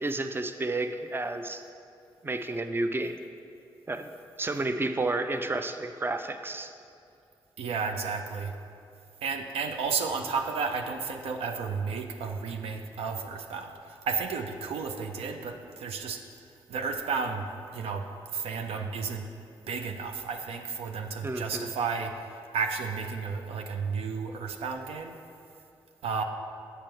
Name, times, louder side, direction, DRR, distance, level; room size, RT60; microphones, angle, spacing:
voice 1, 0.0-1.6 2.2-3.2 3.9-4.1 4.4-6.7 21.2-21.7, right 2 dB, 20° right, 8 dB, 0.5 m, -31 dB
voice 2, 7.6-8.5 9.2-16.2 16.7-19.3 19.7-25.2 26.0-26.2, right 5 dB, 75° right, 5 dB, 0.5 m, -32 dB
7.4 x 5.5 x 4.5 m, 2.5 s
hypercardioid pair, 40°, 10 cm